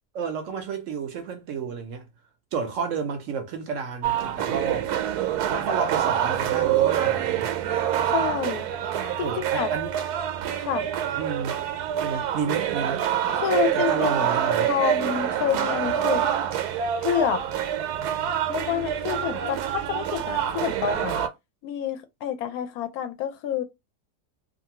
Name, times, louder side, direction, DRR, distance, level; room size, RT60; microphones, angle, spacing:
voice 1, 0.1-2.1 2.5-4.9 5.5-7.5 9.2-9.9 11.1-11.6 12.0-13.1 13.7-14.7, right 5 dB, 65° right, 0.8 m, -31 dB
sound 1, 4.0-21.3, right 10 dB, 85° right, 1.1 m, -26 dB
voice 2, 8.1-8.7 9.2-9.7 10.6-10.9 13.3-14.4 14.7-16.3 17.0-17.4 18.5-21.1 21.6-23.6, left 9 dB, 75° left, 1.0 m, -28 dB
2.6 x 2.6 x 2.8 m
omnidirectional pair, 1.6 m